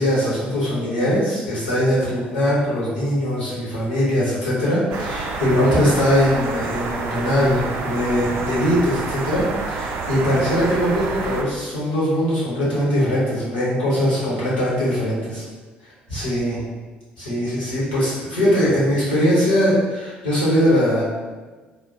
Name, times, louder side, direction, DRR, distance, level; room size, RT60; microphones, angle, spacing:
voice 1, 0.0-9.4 9.7-15.4 16.1-16.6 17.2-21.0, equal, 80° left, -8 dB, 1.0 m, -21 dB
sound 1, 4.9-11.4, right 3 dB, 55° right, 0.4 m, -28 dB
3.4 x 2.2 x 2.7 m, 1.3 s
figure-of-eight pair, 50°, 5 cm